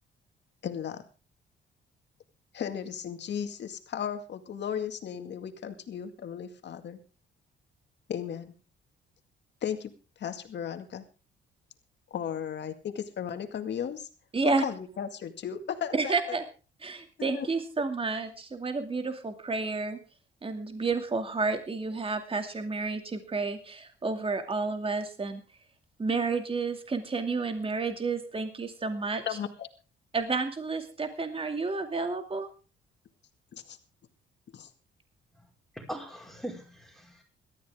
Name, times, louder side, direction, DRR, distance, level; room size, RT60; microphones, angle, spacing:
voice 1, 0.6-1.0 2.5-7.0 8.1-8.5 9.6-9.9 10.2-11.0 12.1-14.1 14.6-16.4 17.2-17.5 29.3-29.7 33.5-33.8 34.5-34.7, left 8 dB, 60° left, 8 dB, 2.1 m, -35 dB
voice 2, 14.3-14.6 15.9-16.4 16.8-20.0 20.4-25.4 26.0-29.2 30.1-32.5, right 4 dB, 25° right, 6 dB, 2.5 m, -30 dB
voice 3, 35.7-37.2, right 1 dB, ahead, 0 dB, 5.1 m, -40 dB
18.5 x 13.5 x 3.7 m, 0.35 s
cardioid pair, 90°, 20 cm